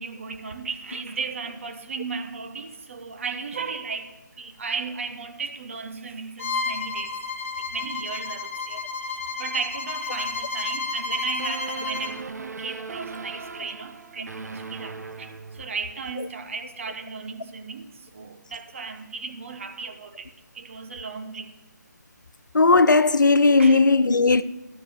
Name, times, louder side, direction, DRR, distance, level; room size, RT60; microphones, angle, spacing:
voice 1, 0.0-7.2 7.7-8.8 9.1-21.5 23.6-23.8, right 5 dB, 45° right, 1.1 m, -35 dB
Bowed string instrument, 6.4-12.2, left 4 dB, 45° left, 1.0 m, -31 dB
sound 1, 11.4-16.0, right 5 dB, 60° right, 0.8 m, -38 dB
voice 2, 22.5-24.4, left 3 dB, 85° left, 0.5 m, -17 dB
13.5 x 6.5 x 6.7 m
figure-of-eight pair, 155°, 10 cm